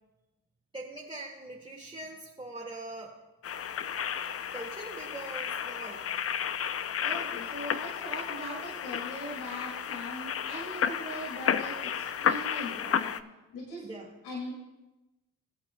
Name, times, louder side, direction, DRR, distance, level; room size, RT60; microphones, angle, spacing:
voice 1, 0.7-3.2 4.5-6.1 13.8-14.1, right 2 dB, 15° right, -4 dB, 2.2 m, -42 dB
sound 1, 3.4-13.2, left 8 dB, 40° left, 0.6 m, -32 dB
voice 2, 7.0-13.2 13.5-13.9 14.2-14.5, equal, 85° left, -3 dB, 2.5 m, -40 dB
20.5 x 8.5 x 2.3 m, 1.0 s
supercardioid pair, 55°, 37 cm